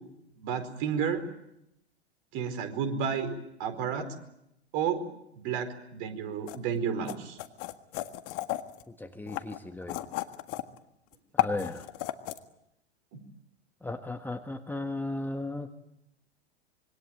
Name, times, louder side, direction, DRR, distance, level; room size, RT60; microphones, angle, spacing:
voice 1, 0.4-1.2 2.3-4.1 4.7-5.1 5.4-7.4 13.1-13.2, right 7 dB, 45° right, 10 dB, 4.6 m, -31 dB
sound 1, 6.5-6.6 7.1-8.8 9.3-10.8 11.1-12.4, left 16 dB, 45° left, 1.8 m, -32 dB
voice 2, 8.9-10.0 11.3-11.9 13.8-15.7, left 2 dB, 5° left, 6 dB, 1.5 m, -36 dB
26.5 x 23.5 x 9.1 m, 0.81 s
hypercardioid pair, 100°, 33 cm